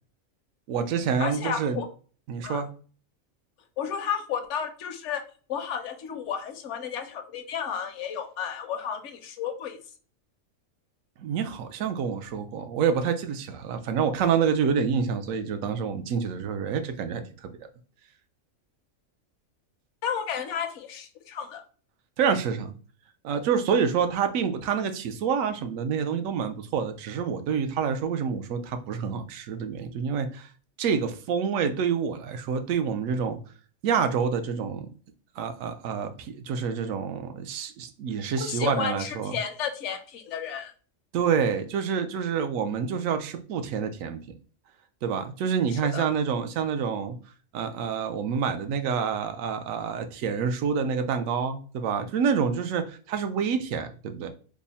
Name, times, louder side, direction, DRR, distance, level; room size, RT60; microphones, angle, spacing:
voice 1, 0.7-1.8 2.3-2.7 11.2-17.5 22.2-22.7 23.2-30.5 30.8-33.4 33.8-34.9 35.4-39.4 41.1-44.2 45.0-47.2 47.5-54.3, right 6 dB, 80° right, 8 dB, 1.0 m, -27 dB
voice 2, 1.2-1.9 2.4-2.7 3.8-5.2 5.5-9.8 20.0-21.6 38.4-40.7 45.7-46.1, left 7 dB, 70° left, 7 dB, 0.8 m, -32 dB
3.5 x 2.0 x 3.9 m, 0.40 s
omnidirectional pair, 1.4 m